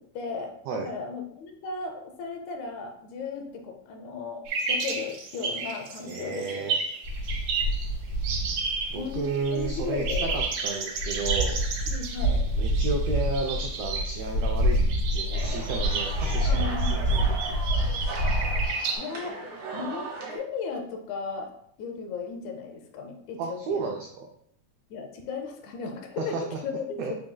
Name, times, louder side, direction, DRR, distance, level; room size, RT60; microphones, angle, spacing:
voice 1, 0.0-4.4 4.7-6.7 9.0-10.4 11.8-12.4 16.5-17.3 19.0-19.4 19.7-21.5 21.8-23.9 24.9-27.2, left 5 dB, 80° left, 3 dB, 2.0 m, -36 dB
sound 1, 4.5-7.9 8.2-9.6 9.9-19.0, right 4 dB, 75° right, 1.7 m, -32 dB
voice 2, 6.0-6.8 8.9-11.6 12.6-14.8 15.1-17.6 23.4-24.3 26.2-26.6 27.0-27.1, right 4 dB, 90° right, 1 dB, 1.4 m, -32 dB
sound 2, 7.0-10.5 10.9-18.7, equal, 30° left, 1.4 m, -27 dB
sound 3, 15.3-20.4, right 4 dB, 55° right, 1.6 m, -38 dB
5.9 x 3.7 x 2.2 m, 0.68 s
omnidirectional pair, 3.4 m